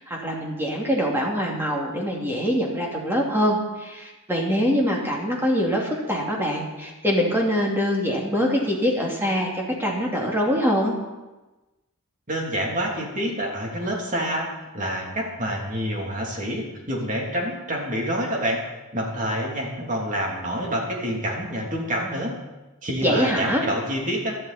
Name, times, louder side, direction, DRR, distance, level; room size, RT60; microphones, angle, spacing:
voice 1, 0.0-10.9 23.0-23.6, equal, 10° right, -2 dB, 2.7 m, -24 dB
voice 2, 12.3-18.6 18.9-22.3 22.8-24.4, equal, 35° right, -1 dB, 3.2 m, -27 dB
17.5 x 12.5 x 4.4 m, 1.1 s
head